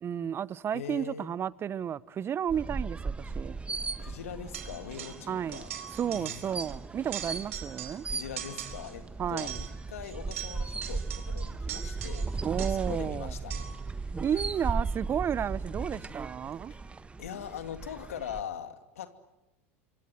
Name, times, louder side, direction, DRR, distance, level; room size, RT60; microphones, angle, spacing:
voice 1, 0.0-3.6 5.3-5.6 6.0-8.1 9.2-9.6 12.4-13.3 14.2-16.7, right 9 dB, 35° right, 0.9 m, -32 dB
voice 2, 0.7-1.3 4.0-6.4 8.1-14.4 15.8-16.1 16.7-16.8 17.2-19.1, left 8 dB, 80° left, 2.6 m, -42 dB
sound 1, 2.5-18.4, right 3 dB, 15° right, 1.2 m, -37 dB
sound 2, 4.5-5.3 5.5-6.8 7.0-8.1 8.4-9.0 9.4-13.0 13.5-13.9, right 11 dB, 75° right, 4.3 m, -42 dB
26.5 x 25.5 x 7.9 m
hypercardioid pair, 90°, 7 cm